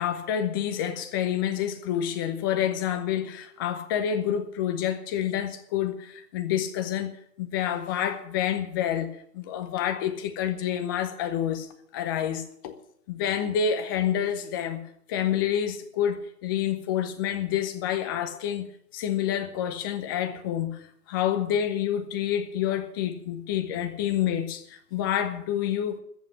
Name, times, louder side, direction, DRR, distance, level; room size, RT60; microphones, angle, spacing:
voice 1, 0.0-12.8 13.1-14.8 15.1-18.7 18.9-26.0, left 9 dB, 15° left, 0.7 m, -28 dB
13.5 x 7.6 x 9.9 m
hypercardioid pair, 150°, 48 cm